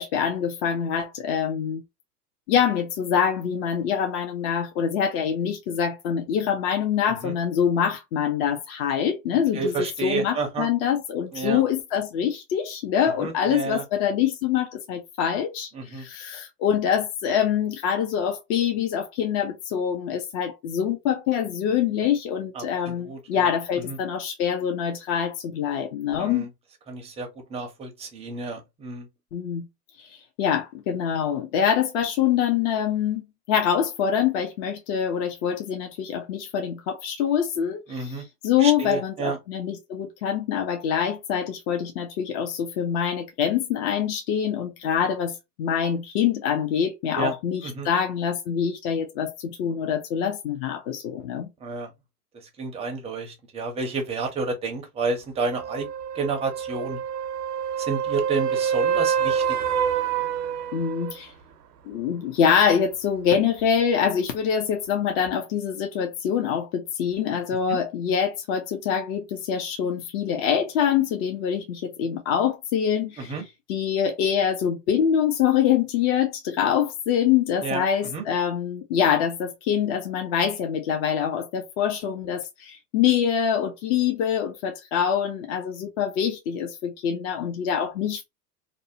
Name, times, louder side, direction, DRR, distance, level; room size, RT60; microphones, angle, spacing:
voice 1, 0.0-1.8 2.5-9.7 10.0-26.5 29.3-29.7 30.0-30.1 30.4-33.2 33.5-51.5 60.7-61.3 61.9-73.4 73.7-88.2, left 8 dB, 40° left, 0.6 m, -25 dB
voice 2, 9.5-10.7 11.3-11.6 13.2-13.8 15.7-16.0 22.5-23.5 23.8-24.0 26.2-26.5 26.9-29.1 37.9-38.2 38.6-39.4 47.2-47.3 47.6-47.9 51.6-51.9 52.6-55.9 56.1-57.0 57.8-59.6 67.7-67.8 73.2-73.4 77.6-78.2, right 4 dB, 15° right, 0.5 m, -30 dB
sound 1, 55.5-61.2 65.3-65.4, right 8 dB, 85° right, 0.6 m, -26 dB
2.6 x 2.1 x 2.6 m
hypercardioid pair, 110°, 47 cm